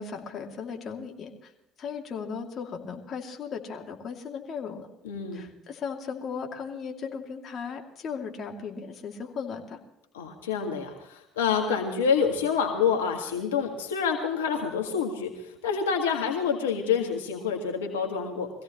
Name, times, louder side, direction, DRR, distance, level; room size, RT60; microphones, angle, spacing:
voice 1, 0.0-1.5 1.8-4.9 5.3-9.8, left 6 dB, 50° left, 2 dB, 2.6 m, -36 dB
voice 2, 5.0-5.5 10.1-18.5, left 6 dB, 85° left, 3 dB, 1.7 m, -27 dB
23.5 x 16.5 x 3.1 m, 0.85 s
hypercardioid pair, 65°, 0 cm